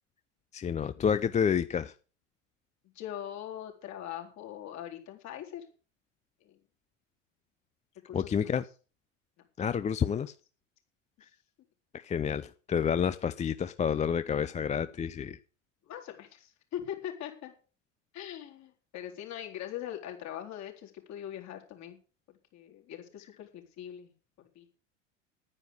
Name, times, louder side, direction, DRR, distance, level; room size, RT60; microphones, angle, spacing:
voice 1, 0.5-1.9 8.1-8.6 9.6-10.3 11.9-15.4, left 7 dB, 20° left, 0.6 m, -29 dB
voice 2, 2.9-5.7 6.4-6.6 8.1-8.5 15.8-17.5 18.1-22.0 22.5-24.1 24.4-24.7, left 10 dB, 45° left, 4.0 m, -41 dB
10.5 x 9.7 x 6.7 m
hypercardioid pair, 85°, 38 cm